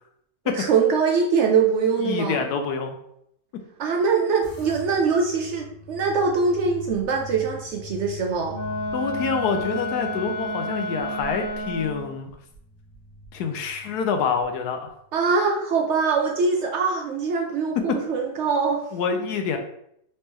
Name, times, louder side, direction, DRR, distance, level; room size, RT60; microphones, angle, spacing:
voice 1, 0.4-2.4 3.8-8.6 15.1-18.8, right 5 dB, 80° right, 1 dB, 0.6 m, -23 dB
voice 2, 2.0-3.0 8.9-12.3 13.3-14.9 17.9-18.0 18.9-19.6, left 6 dB, 75° left, 5 dB, 1.1 m, -26 dB
sound 1, 4.4-15.0, left 1 dB, 25° left, 1.6 m, -43 dB
Wind instrument woodwind instrument, 8.5-12.2, left 1 dB, 50° left, 0.7 m, -30 dB
4.5 x 3.3 x 3.0 m, 0.73 s
omnidirectional pair, 1.8 m